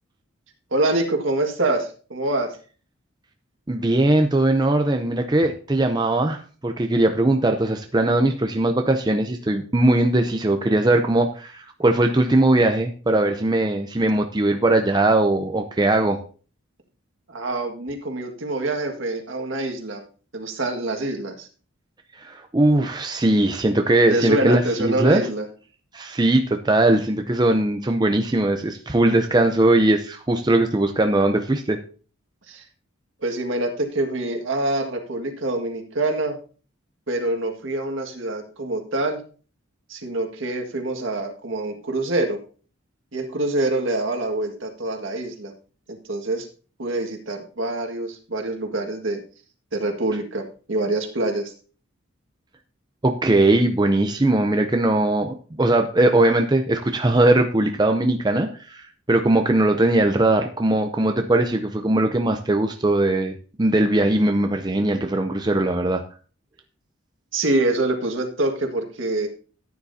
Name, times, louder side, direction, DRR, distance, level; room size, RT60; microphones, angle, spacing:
voice 1, 0.7-2.5 17.3-20.0 20.3-21.5 24.1-25.4 32.5-32.6 33.2-36.4 37.1-39.2 39.9-42.4 43.1-45.5 45.9-46.5 46.8-49.2 49.7-51.5 67.3-69.3, right 2 dB, 65° right, 4 dB, 1.9 m, -25 dB
voice 2, 3.7-16.2 22.1-25.2 25.9-31.8 53.0-63.3 63.6-66.0, right 2 dB, 20° right, 5 dB, 0.6 m, -20 dB
14.0 x 9.6 x 2.8 m, 0.39 s
head